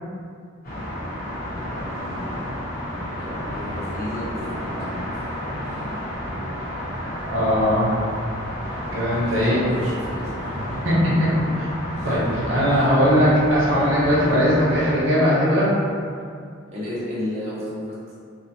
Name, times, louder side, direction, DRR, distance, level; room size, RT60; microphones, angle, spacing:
sound 1, 0.6-14.9, equal, 45° left, 1.0 m, -31 dB
voice 1, 1.9-2.4 3.2-5.0 5.6-5.9 9.2-10.5 11.9-12.3 12.7-12.9 16.7-17.9, left 1 dB, 35° right, -9 dB, 0.7 m, -33 dB
voice 2, 7.3-7.9 8.9-9.6 10.5-11.1 11.6-11.7 12.0-15.7, equal, 80° right, -8 dB, 0.8 m, -19 dB
2.7 x 2.1 x 2.7 m, 2.2 s
head